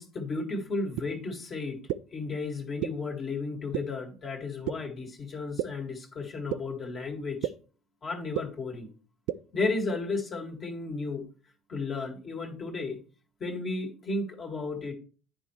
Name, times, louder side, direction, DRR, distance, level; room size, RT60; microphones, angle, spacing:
voice 1, 0.0-1.8 2.1-7.5 8.0-8.9 9.5-11.3 11.7-13.0 13.4-14.9, left 3 dB, 40° left, 1 dB, 1.8 m, -33 dB
sound 1, 1.0-1.1 1.9-2.0 2.8-2.9 3.7-3.8 4.7-4.8 5.6-5.7 6.5-6.6 7.4-7.5 8.3-8.4 9.3-9.4, right 14 dB, 70° right, 0.3 m, -28 dB
9.8 x 4.4 x 3.1 m, 0.38 s
hypercardioid pair, 65°, 0 cm